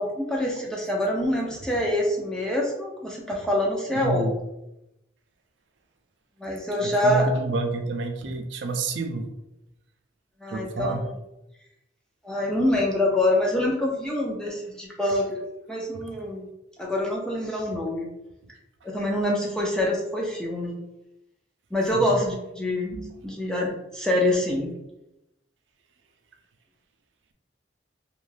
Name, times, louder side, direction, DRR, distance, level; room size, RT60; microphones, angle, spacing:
voice 1, 0.0-4.3 6.4-7.3 10.4-11.1 12.2-15.4 15.7-16.5 16.8-18.1 18.8-20.8 21.7-22.9 23.2-24.7, left 1 dB, 5° left, -2 dB, 0.5 m, -25 dB
voice 2, 3.9-4.4 6.8-9.3 10.5-11.0 15.9-16.0 21.9-22.2 22.9-23.2, right 2 dB, 85° right, 5 dB, 0.4 m, -29 dB
2.6 x 2.3 x 3.2 m, 0.90 s
head